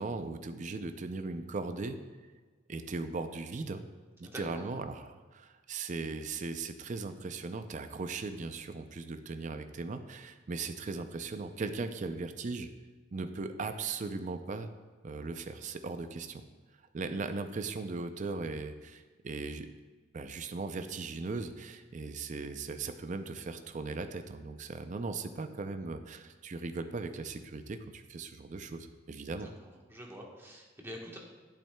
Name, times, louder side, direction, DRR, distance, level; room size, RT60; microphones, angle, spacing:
voice 1, 0.0-2.0 2.7-3.9 4.2-12.7 13.1-14.7 15.0-16.4 16.9-19.7 20.1-29.5, right 3 dB, 40° right, 8 dB, 0.4 m, -38 dB
voice 2, 4.2-4.8 29.4-29.5 29.9-31.2, equal, 10° right, -1 dB, 1.1 m, -45 dB
10.5 x 8.3 x 2.2 m, 1.4 s
head